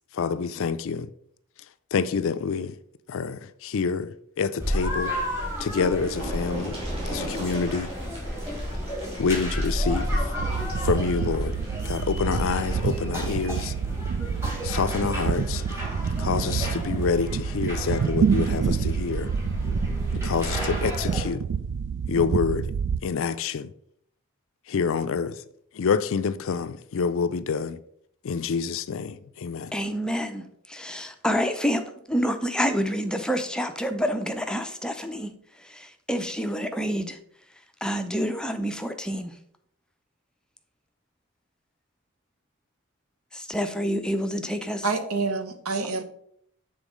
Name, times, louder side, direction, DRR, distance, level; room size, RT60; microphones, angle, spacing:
voice 1, 0.1-1.1 1.9-2.8 3.1-5.1 5.6-6.8 7.1-7.9 9.2-10.3 10.8-13.7 14.6-15.6 16.2-19.3 20.1-21.5 22.1-22.7 23.0-23.7 24.7-25.4 25.7-27.8 28.2-29.7, left 5 dB, 60° left, 0.4 m, -27 dB
sound 1, 4.6-21.3, equal, 10° right, 1.9 m, -32 dB
sound 2, 5.7-12.5 13.8-14.0 14.4-14.5, right 1 dB, 30° right, 2.7 m, -40 dB
sound 3, 10.4-23.0, right 6 dB, 55° right, 0.3 m, -28 dB
voice 2, 29.7-35.3 35.6-37.2 37.8-39.3 43.3-44.9, equal, 5° left, 0.5 m, -28 dB
voice 3, 44.8-46.0, right 4 dB, 70° right, 0.8 m, -27 dB
7.2 x 3.8 x 5.0 m
head